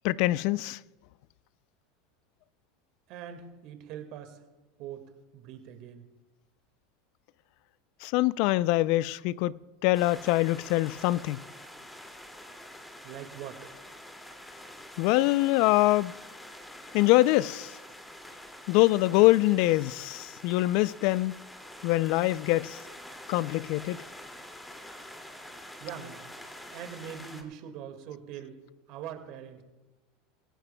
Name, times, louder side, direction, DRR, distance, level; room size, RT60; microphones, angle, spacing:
voice 1, 0.0-0.8 8.0-11.4 15.0-16.1 16.9-17.7 18.7-21.4 21.8-22.8 23.3-24.0, left 18 dB, 65° left, 0.4 m, -24 dB
voice 2, 3.1-4.4 4.8-5.0 5.3-6.0 13.0-13.7 25.8-26.2 26.7-28.6 28.9-29.6, right 9 dB, 60° right, 1.9 m, -42 dB
sound 1, 9.9-27.4, left 1 dB, 10° left, 2.3 m, -46 dB
24.5 x 16.0 x 2.3 m
hypercardioid pair, 95°, 0 cm